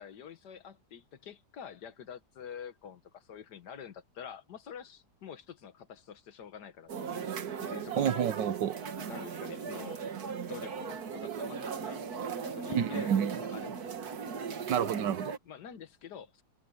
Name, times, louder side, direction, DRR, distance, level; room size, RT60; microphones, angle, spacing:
voice 1, 0.0-8.3 9.1-10.0 10.5-13.9 15.5-16.4, left 7 dB, 70° left, 1.9 m, -47 dB
sound 1, 6.9-15.4, right 6 dB, 65° right, 1.9 m, -38 dB
voice 2, 8.0-8.7 12.7-13.4 14.7-15.3, right 8 dB, 90° right, 1.6 m, -29 dB
omnidirectional pair, 1.8 m